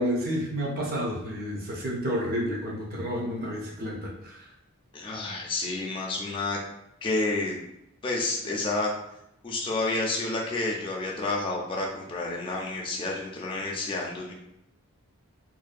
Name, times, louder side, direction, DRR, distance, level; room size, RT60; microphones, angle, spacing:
voice 1, 0.0-4.5, equal, 40° right, -2 dB, 0.6 m, -30 dB
voice 2, 4.9-6.6 7.0-7.6 8.0-8.9 9.4-14.3, left 2 dB, 20° left, -2 dB, 0.3 m, -29 dB
2.6 x 2.2 x 2.4 m, 0.82 s
head